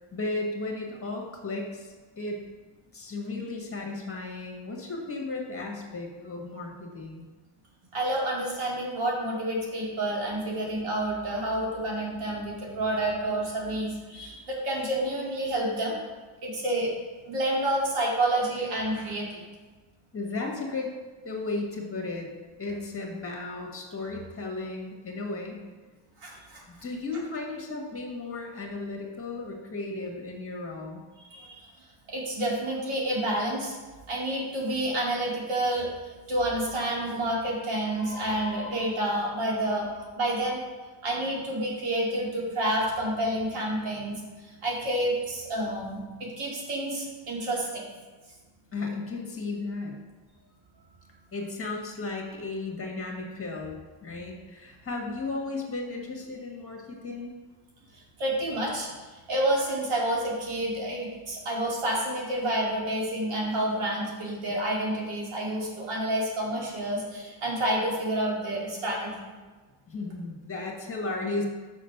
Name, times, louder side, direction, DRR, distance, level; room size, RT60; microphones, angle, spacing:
voice 1, 0.1-2.4 2.9-7.3 20.1-20.9 21.2-22.3 22.6-25.7 26.7-31.0 48.7-50.0 51.3-57.4 69.9-71.5, left 3 dB, 25° left, 0 dB, 1.7 m, -35 dB
voice 2, 7.9-15.9 16.4-16.9 17.2-19.5 26.2-26.6 31.3-31.7 32.1-33.7 34.1-39.9 40.2-40.6 41.0-47.9 57.9-69.2, right 1 dB, 90° right, -3 dB, 2.5 m, -29 dB
6.3 x 5.8 x 5.9 m, 1.3 s
cardioid pair, 115°, 49 cm